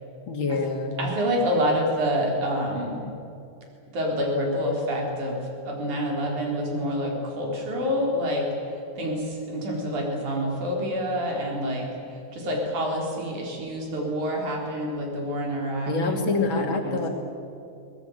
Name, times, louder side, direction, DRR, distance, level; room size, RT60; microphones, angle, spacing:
voice 1, 0.3-1.1 15.9-17.1, left 3 dB, 45° left, 3 dB, 2.8 m, -26 dB
voice 2, 1.0-3.0 3.9-5.4 5.7-8.5 9.0-11.9 12.3-16.3 16.6-17.1, equal, 80° right, 0 dB, 5.2 m, -27 dB
22.5 x 19.0 x 9.1 m, 2.6 s
omnidirectional pair, 3.4 m